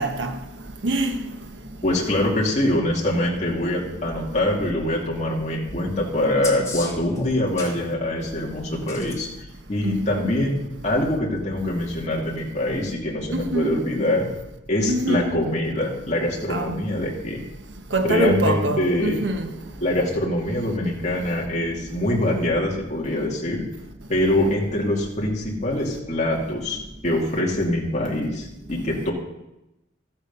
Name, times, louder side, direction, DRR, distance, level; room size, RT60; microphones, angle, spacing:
voice 1, 0.0-1.4 1.7-1.8 4.0-4.1 5.7-5.8 9.8-10.3 13.3-13.8 14.9-15.3 16.5-16.8 17.9-19.6 21.0-21.1, right 1 dB, 85° right, 1.2 m, -25 dB
voice 2, 1.8-9.3 9.7-14.3 14.7-17.4 18.0-19.2 19.8-23.6 24.1-26.8 27.0-29.1, left 1 dB, 40° left, 2.4 m, -24 dB
sound 1, 6.4-7.8 8.8-9.2 11.3-11.4, left 3 dB, 15° left, 1.7 m, -34 dB
13.5 x 8.6 x 5.4 m
head